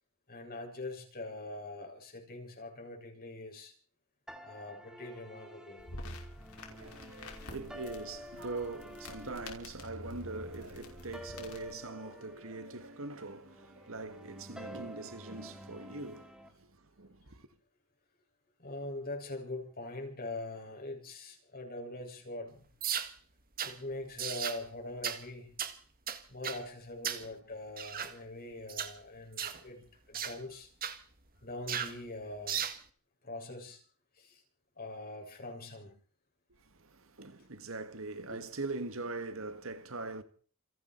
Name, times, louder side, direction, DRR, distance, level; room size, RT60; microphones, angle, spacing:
voice 1, 0.3-3.7 4.4-5.9 6.4-6.6 18.6-22.6 23.6-25.6 26.3-30.7 31.4-32.6 33.2-33.8 34.1-34.4 34.8-35.9 38.3-38.5, left 2 dB, 45° left, 6.8 m, -43 dB
sound 1, 4.3-16.5, equal, 5° right, 2.8 m, -50 dB
sound 2, 5.8-11.8, left 2 dB, 85° left, 5.5 m, -49 dB
voice 2, 6.7-16.3 17.0-17.5 37.0-40.2, right 3 dB, 65° right, 1.8 m, -42 dB
sound 3, 22.8-23.1 23.6-23.8 24.2-24.6 25.0-25.2 25.6-25.8 26.1-26.6 27.0-27.3 27.8-28.1 28.7-28.9 29.4-29.6 30.1-30.4 30.8-31.0 31.7-32.0 32.5-32.8, right 8 dB, 45° right, 1.8 m, -36 dB
28.5 x 11.0 x 4.6 m
head